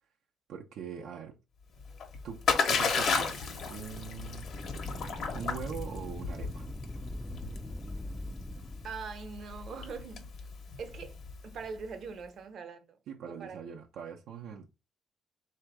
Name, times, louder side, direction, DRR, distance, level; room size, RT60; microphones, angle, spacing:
voice 1, 0.5-1.4 2.2-4.5 5.3-6.7 13.1-14.7, right 7 dB, 80° right, 0.6 m, -42 dB
Splash splatter, 1.8-11.6, left 5 dB, 65° left, 1.1 m, -33 dB
sound 1, 4.1-8.9, left 1 dB, 10° left, 0.4 m, -41 dB
voice 2, 8.8-10.3 10.8-11.2 11.4-13.0 13.3-13.6, right 5 dB, 60° right, 0.9 m, -42 dB
3.5 x 2.8 x 4.7 m
cardioid pair, 90°, 0 cm